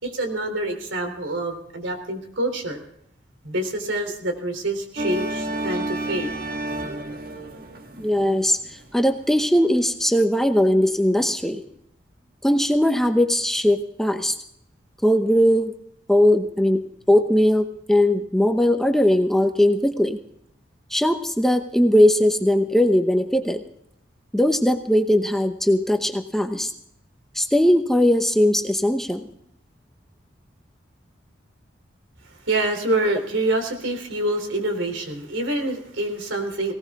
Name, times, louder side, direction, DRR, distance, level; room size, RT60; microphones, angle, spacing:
voice 1, 0.0-2.8 3.4-6.3 32.4-36.7, right 1 dB, 90° right, 6 dB, 3.4 m, -26 dB
sound 1, 5.0-9.4, right 2 dB, 50° right, 1.8 m, -31 dB
voice 2, 8.0-8.6 8.9-11.6 12.4-14.4 15.0-15.7 16.1-20.2 20.9-23.6 24.3-26.7 27.3-29.2, left 1 dB, ahead, 6 dB, 0.9 m, -19 dB
19.0 x 18.0 x 3.6 m, 0.72 s
head